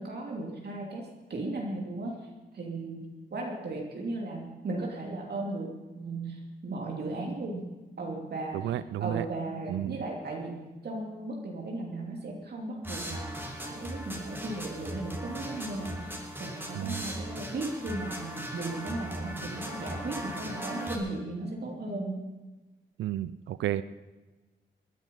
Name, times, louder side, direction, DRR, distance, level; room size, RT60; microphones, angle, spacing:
voice 1, 0.0-2.2 2.5-7.6 8.0-8.7 9.0-22.3, right 2 dB, 60° right, 0 dB, 3.1 m, -36 dB
voice 2, 8.5-9.2 9.7-10.0 16.7-17.0 23.0-23.8, right 12 dB, 80° right, 16 dB, 0.5 m, -32 dB
sound 1, 12.8-21.0, equal, 10° right, 3.6 m, -38 dB
20.5 x 9.9 x 5.7 m, 1.2 s
supercardioid pair, 55°, 19 cm